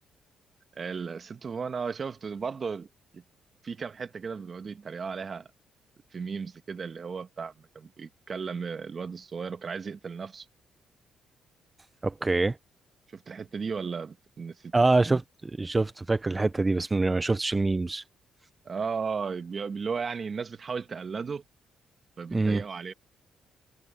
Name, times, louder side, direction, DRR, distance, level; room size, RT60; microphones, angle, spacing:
voice 1, 0.7-2.9 3.1-3.2 3.6-5.5 6.1-10.5 13.1-14.7 18.6-21.4 22.2-22.9, right 5 dB, 40° right, 1.5 m, -35 dB
voice 2, 12.0-12.6 14.7-18.0 22.3-22.6, right 3 dB, 20° right, 0.6 m, -25 dB
cardioid pair, 90°, 0 cm